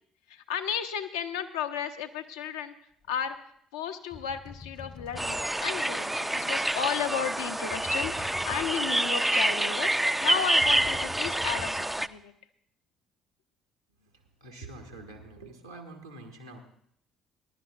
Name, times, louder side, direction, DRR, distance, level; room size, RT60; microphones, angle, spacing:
voice 1, 0.3-2.7 3.1-3.4 3.7-9.9 10.2-12.3, left 8 dB, 70° left, 6 dB, 0.6 m, -33 dB
sound 1, 3.1-3.3 4.1-5.8 7.7-9.1 10.6-12.2, left 4 dB, 40° left, 0.8 m, -45 dB
sound 2, 5.2-12.1, right 1 dB, 5° right, 0.3 m, -27 dB
voice 2, 14.0-16.6, right 2 dB, 90° right, 2 dB, 1.3 m, -46 dB
20.5 x 11.5 x 2.4 m, 0.69 s
figure-of-eight pair, 50°, 2 cm